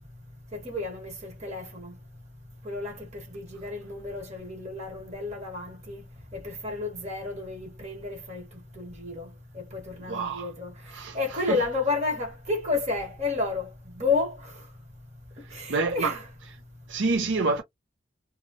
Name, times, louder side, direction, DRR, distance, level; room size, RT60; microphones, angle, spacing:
voice 1, 0.5-2.0 2.6-6.1 6.3-10.7 11.1-13.7 13.9-14.5 15.5-16.2, left 3 dB, 35° right, 1.4 m, -31 dB
voice 2, 10.0-10.5 10.9-11.6 15.4-16.2 16.9-17.6, right 3 dB, 70° right, 0.6 m, -28 dB
3.2 x 2.3 x 2.5 m
head